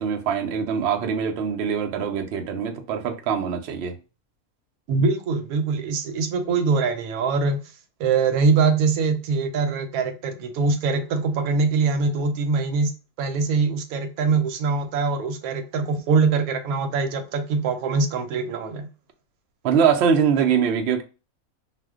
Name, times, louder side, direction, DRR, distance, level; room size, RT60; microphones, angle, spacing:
voice 1, 0.0-4.0 19.6-21.0, right 7 dB, 65° right, 0.6 m, -23 dB
voice 2, 4.9-7.6 8.0-12.9 13.2-18.9, right 4 dB, 85° right, 1.1 m, -23 dB
2.4 x 2.1 x 3.5 m
omnidirectional pair, 1.5 m